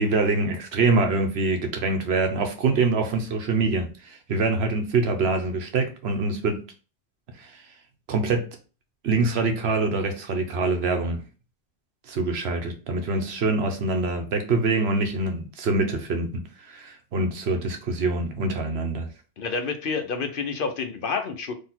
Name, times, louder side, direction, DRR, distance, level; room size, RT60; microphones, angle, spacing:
voice 1, 0.0-6.6 7.4-7.5 8.1-8.5 9.0-11.2 12.1-19.1, right 3 dB, 80° right, 1.1 m, -25 dB
voice 2, 19.4-21.5, left 5 dB, 60° left, 0.9 m, -29 dB
4.0 x 2.9 x 4.3 m
omnidirectional pair, 1.1 m